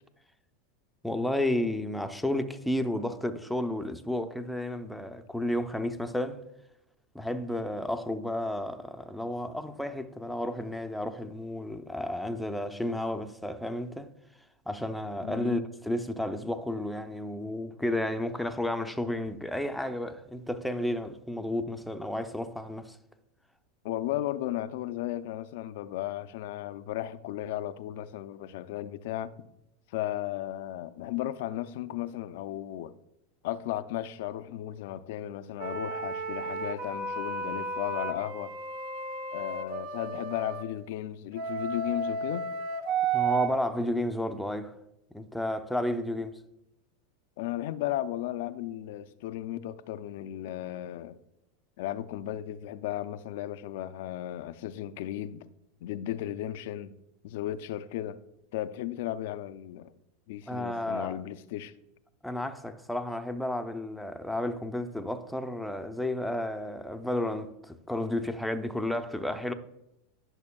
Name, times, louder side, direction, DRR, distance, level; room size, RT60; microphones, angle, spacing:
voice 1, 1.0-6.4 7.1-14.1 14.7-23.0 43.1-44.8 45.1-46.4 60.5-61.2 62.2-69.5, left 1 dB, ahead, 0.5 m, -32 dB
voice 2, 15.2-15.6 23.8-29.3 29.9-32.9 33.4-38.5 39.3-42.4 47.4-51.2 51.8-55.5 55.8-56.9 57.2-58.2 58.5-59.9 60.3-61.7, left 13 dB, 65° left, 0.4 m, -35 dB
sound 1, 35.6-40.6 41.3-43.5, right 4 dB, 65° right, 0.9 m, -32 dB
10.5 x 6.3 x 2.3 m
hypercardioid pair, 105°, 0 cm